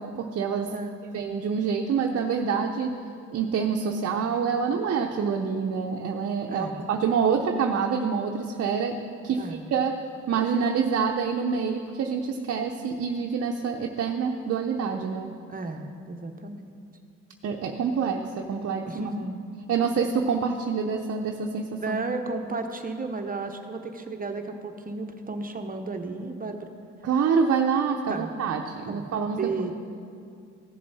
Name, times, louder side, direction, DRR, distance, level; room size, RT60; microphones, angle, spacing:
voice 1, 0.0-0.7 1.1-3.0 3.3-9.4 9.7-10.0 10.3-15.3 17.4-18.9 19.7-22.0 27.0-29.5, right 6 dB, 55° right, 3 dB, 0.7 m, -26 dB
voice 2, 6.5-6.9 9.3-9.7 15.5-16.7 18.9-19.4 21.8-26.7 28.1-28.3 28.9-29.7, right 3 dB, 30° right, 5 dB, 0.9 m, -33 dB
15.0 x 7.4 x 4.1 m, 2.4 s
cardioid pair, 90°, 30 cm